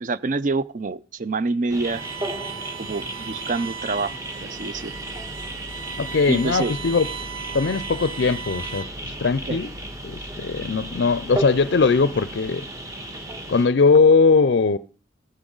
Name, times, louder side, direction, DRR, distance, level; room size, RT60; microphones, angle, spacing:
voice 1, 0.0-2.0 2.8-4.9 6.3-6.7 9.2-9.6, right 3 dB, 40° right, 0.5 m, -27 dB
sound 1, 1.7-13.7, right 1 dB, 15° right, 1.4 m, -34 dB
Bowed string instrument, 1.8-9.1, right 8 dB, 90° right, 0.6 m, -37 dB
voice 2, 6.0-7.1 7.5-9.7 10.0-12.6 13.5-14.8, left 4 dB, 60° left, 0.4 m, -20 dB
14.5 x 9.8 x 3.9 m
head